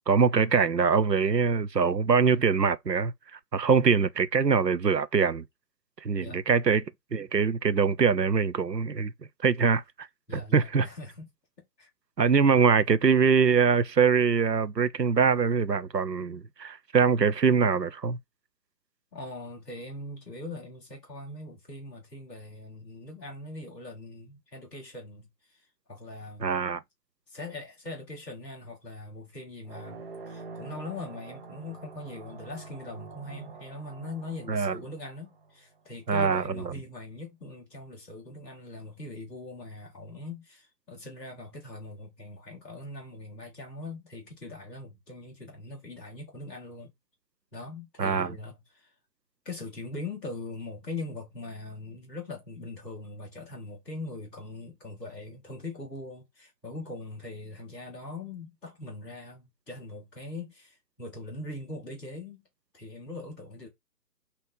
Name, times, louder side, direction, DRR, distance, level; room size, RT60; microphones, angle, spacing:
voice 1, 0.1-5.4 6.0-6.8 7.1-9.1 9.4-10.1 10.5-10.9 12.2-18.2 26.4-26.8 34.5-34.8 36.1-36.7 48.0-48.3, right 5 dB, 80° right, 0.9 m, -23 dB
voice 2, 10.3-11.3 11.8-11.9 19.1-25.3 25.9-26.5 27.3-46.9 47.5-48.9 49.4-62.4 62.7-63.7, left 2 dB, ahead, 0.8 m, -41 dB
sound 1, 29.6-35.8, right 4 dB, 35° right, 1.1 m, -46 dB
5.7 x 3.2 x 5.4 m
figure-of-eight pair, 145°, 49 cm